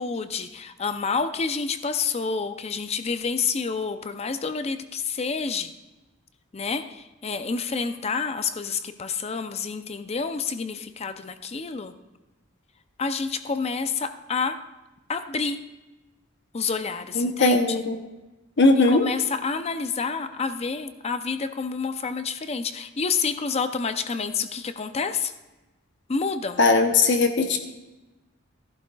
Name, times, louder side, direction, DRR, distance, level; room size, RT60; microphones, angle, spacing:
voice 1, 0.0-5.7 6.5-11.9 13.0-14.6 15.1-15.6 16.5-17.8 18.8-25.3 26.1-26.6, left 5 dB, 30° left, 10 dB, 0.5 m, -28 dB
voice 2, 17.1-18.0 18.6-19.0 26.6-27.6, left 3 dB, 55° left, 5 dB, 0.8 m, -19 dB
14.5 x 11.5 x 2.3 m, 1.1 s
head